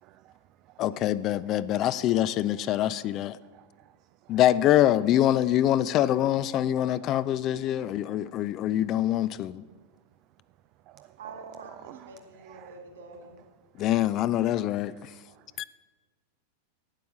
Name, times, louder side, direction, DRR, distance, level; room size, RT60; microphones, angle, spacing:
voice 1, 0.0-0.3 0.7-0.8 3.0-3.1 3.5-3.9 4.3-4.4 6.9-7.2 7.5-8.3 10.9-11.2 11.9-12.0 12.5-12.7 13.8-14.1 14.9-15.4, right 15 dB, 40° right, 13 dB, 0.3 m, -54 dB
voice 2, 0.8-3.4 4.3-9.6 13.8-14.9 15.6-15.7, left 12 dB, 35° left, 16 dB, 0.4 m, -24 dB
voice 3, 11.2-13.4, right 3 dB, 65° right, 3 dB, 3.2 m, -46 dB
11.5 x 9.3 x 7.3 m, 1.3 s
figure-of-eight pair, 90°, 0 cm